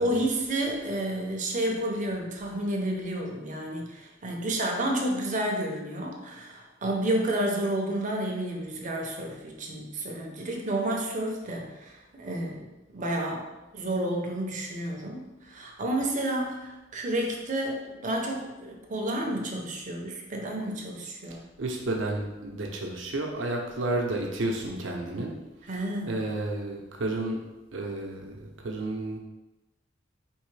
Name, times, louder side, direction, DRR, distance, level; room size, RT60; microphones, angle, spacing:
voice 1, 0.0-21.5 25.7-26.2, right 1 dB, 45° right, 1 dB, 0.7 m, -30 dB
voice 2, 21.6-25.3 25.7-25.8 26.1-27.4 27.7-29.2, right 2 dB, 80° right, 1 dB, 0.7 m, -31 dB
4.5 x 3.1 x 3.2 m, 1.0 s
head